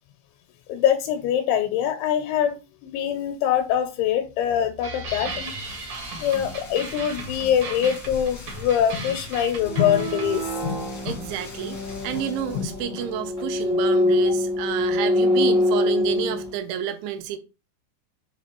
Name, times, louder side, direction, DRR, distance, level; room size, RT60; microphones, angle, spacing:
voice 1, 0.7-5.5 6.2-11.2 12.5-13.0, left 9 dB, 90° left, 3.2 m, -24 dB
sound 1, 4.8-10.5, right 3 dB, 65° right, 1.3 m, -37 dB
Rain, 5.0-12.8, left 3 dB, 65° left, 0.9 m, -42 dB
sound 2, 9.6-16.5, left 1 dB, 10° right, 0.6 m, -24 dB
voice 2, 11.0-17.4, right 9 dB, 85° right, 3.1 m, -30 dB
7.1 x 3.1 x 4.4 m
omnidirectional pair, 5.2 m